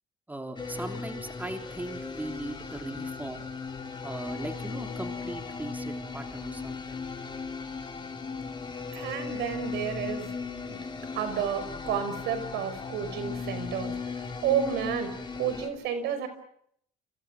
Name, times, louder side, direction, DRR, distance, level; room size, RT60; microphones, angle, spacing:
voice 1, 0.3-3.5 4.0-7.0, right 1 dB, 10° right, 4 dB, 3.3 m, -39 dB
sound 1, 0.6-15.7, left 4 dB, 25° left, 4.8 m, -37 dB
voice 2, 8.9-10.3 10.7-10.8 11.1-16.3, right 8 dB, 85° right, 10 dB, 5.4 m, -31 dB
30.0 x 27.0 x 6.3 m, 0.70 s
cardioid pair, 110°, 17 cm